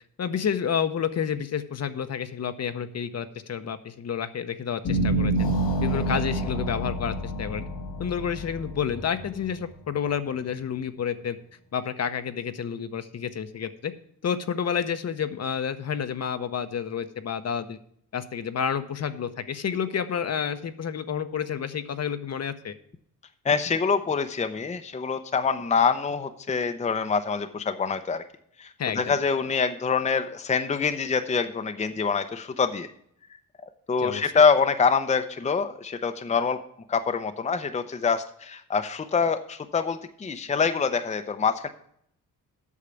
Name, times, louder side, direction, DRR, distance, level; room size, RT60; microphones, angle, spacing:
voice 1, 0.2-5.5 5.8-7.7 8.0-11.4 11.7-13.9 14.2-17.8 18.1-22.7 28.8-29.2 34.0-34.4, left 7 dB, 50° left, 10 dB, 0.8 m, -30 dB
sound 1, 4.8-10.1, right 1 dB, 80° left, 2.6 m, -28 dB
voice 2, 23.4-28.2 28.6-28.7 28.9-32.9 33.9-36.6 36.9-41.7, left 5 dB, 20° left, 9 dB, 0.6 m, -25 dB
8.4 x 6.5 x 7.0 m, 0.67 s
cardioid pair, 115°, 34 cm